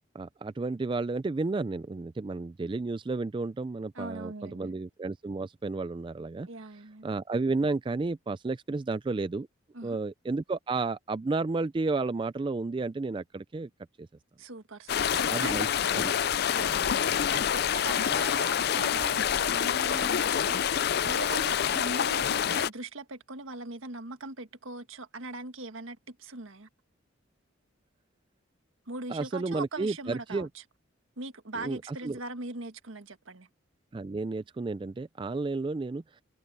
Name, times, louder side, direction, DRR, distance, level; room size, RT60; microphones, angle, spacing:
voice 1, 0.1-6.5 7.0-9.5 9.8-13.7 14.0-14.1 15.1-15.7 15.9-16.1 29.1-30.5 31.6-32.2 33.9-36.0, right 3 dB, 25° right, 0.3 m, -32 dB
voice 2, 3.9-4.7 6.4-7.1 9.7-10.0 14.4-15.7 16.5-26.7 28.9-30.6 31.2-33.5, right 3 dB, 80° right, 1.6 m, -41 dB
sound 1, 14.9-22.7, left 8 dB, 50° left, 0.4 m, -27 dB
head